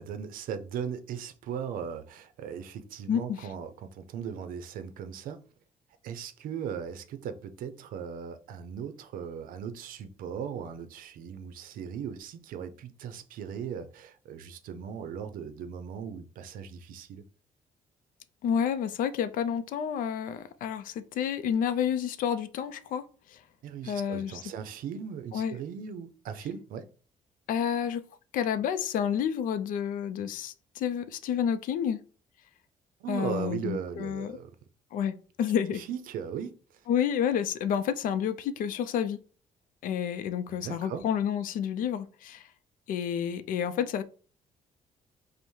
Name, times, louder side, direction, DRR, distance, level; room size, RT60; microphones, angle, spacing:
voice 1, 0.0-5.4 6.0-17.2 23.6-26.9 33.0-34.6 35.7-36.8 40.5-41.1, right 7 dB, 85° right, 0.5 m, -38 dB
voice 2, 3.1-3.5 18.4-23.0 23.3-23.4 23.8-24.4 25.3-25.6 27.5-28.0 28.3-32.0 33.1-34.4 34.9-35.8 36.9-39.2 39.8-42.5 42.9-44.0, left 8 dB, 75° left, 0.4 m, -30 dB
5.3 x 2.1 x 3.1 m
cardioid pair, 140°, 14 cm